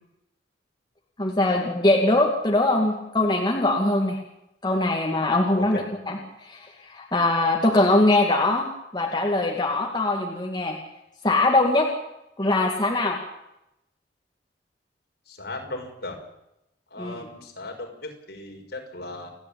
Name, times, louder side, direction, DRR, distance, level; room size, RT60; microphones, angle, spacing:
voice 1, 1.2-4.2 4.6-10.8 11.2-11.9 12.4-13.2 17.0-17.1, left 2 dB, 25° left, 0 dB, 2.5 m, -22 dB
voice 2, 15.3-16.2 16.9-19.3, left 2 dB, 60° left, 1 dB, 6.2 m, -37 dB
29.5 x 11.5 x 8.9 m, 0.85 s
head